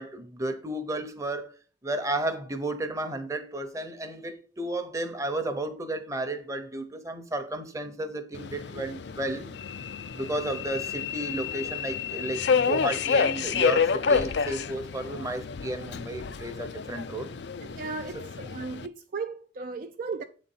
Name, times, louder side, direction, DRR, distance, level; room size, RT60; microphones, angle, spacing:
voice 1, 0.0-1.5 1.8-9.5 10.1-17.3 18.1-18.3, right 1 dB, 15° right, 0.8 m, -33 dB
Subway metro underground, 8.3-18.9, left 6 dB, 60° left, 0.4 m, -29 dB
voice 2, 17.6-20.2, right 4 dB, 45° right, 0.4 m, -36 dB
8.2 x 4.1 x 5.5 m
head